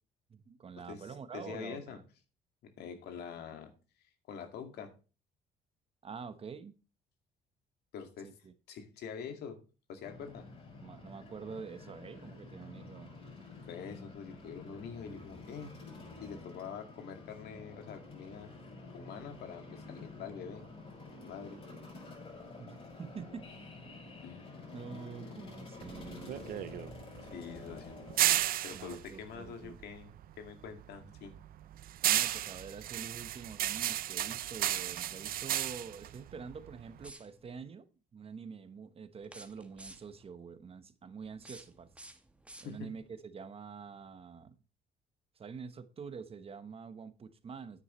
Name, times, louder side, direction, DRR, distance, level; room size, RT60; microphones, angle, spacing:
voice 1, 0.3-2.0 6.0-6.7 8.2-8.5 10.8-13.2 22.6-23.5 24.7-26.4 28.7-29.8 32.1-41.9 42.6-44.5 45.4-47.8, right 5 dB, 35° right, 1.1 m, -46 dB
voice 2, 1.3-2.0 2.6-3.7 4.3-4.9 7.9-8.3 8.7-9.6 9.9-10.5 13.7-15.7 16.2-18.5 18.9-20.7 21.2-21.6 24.2-24.4 27.2-28.0 28.6-30.1 30.4-31.4 42.6-42.9, left 7 dB, 75° left, 2.2 m, -45 dB
sound 1, 10.0-28.4, left 3 dB, 35° left, 6.2 m, -49 dB
sound 2, 25.8-30.3 30.7-37.1, right 13 dB, 60° right, 0.6 m, -33 dB
sound 3, 37.0-37.6 39.2-40.3 41.2-43.1, right 2 dB, 5° right, 1.1 m, -53 dB
9.7 x 9.1 x 3.1 m
cardioid pair, 110°, 17 cm